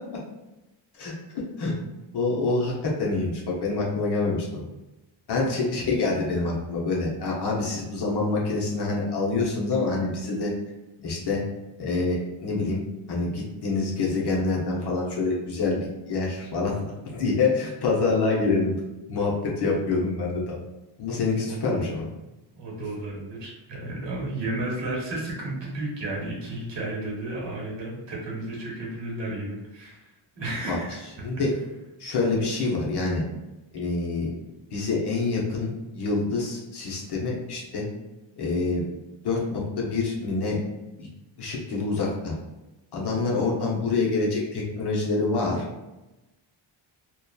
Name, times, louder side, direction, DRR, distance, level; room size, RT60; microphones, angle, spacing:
voice 1, 2.1-4.6 5.3-10.5 11.0-11.4 11.8-12.8 13.1-18.7 19.1-20.6 21.0-22.1 30.7-30.8 31.2-31.5 32.0-33.2 33.7-34.3 34.7-37.9 38.4-38.9 39.2-40.6 41.0-41.1 41.4-42.3 42.9-45.6, left 3 dB, 55° left, -3 dB, 0.7 m, -26 dB
voice 2, 21.4-22.0 22.5-30.1 30.3-31.0, right 2 dB, 60° right, -3 dB, 1.0 m, -33 dB
2.7 x 2.2 x 2.3 m, 1.0 s
wide cardioid pair, 145°, 49 cm